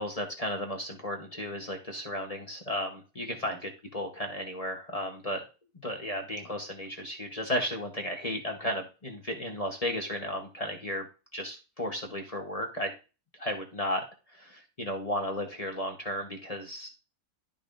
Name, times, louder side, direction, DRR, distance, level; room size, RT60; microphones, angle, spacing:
voice 1, 0.0-5.4 5.8-11.0 11.3-12.9 13.4-14.0 14.3-16.9, equal, 25° left, 2 dB, 1.2 m, -34 dB
12.0 x 5.4 x 2.6 m, 0.32 s
omnidirectional pair, 1.6 m